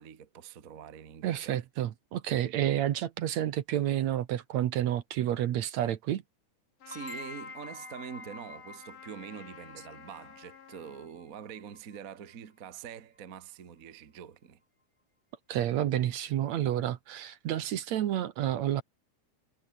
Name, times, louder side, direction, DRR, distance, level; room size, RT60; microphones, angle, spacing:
voice 1, 0.0-1.6 6.8-14.6, right 8 dB, 40° right, 1.4 m, -45 dB
voice 2, 1.2-6.2 15.5-18.8, right 11 dB, 70° right, 2.3 m, -30 dB
Trumpet, 6.8-11.1, left 9 dB, 50° left, 2.1 m, -51 dB
sound 1, 6.9-12.3, left 2 dB, 15° left, 1.2 m, -48 dB
omnidirectional pair, 3.5 m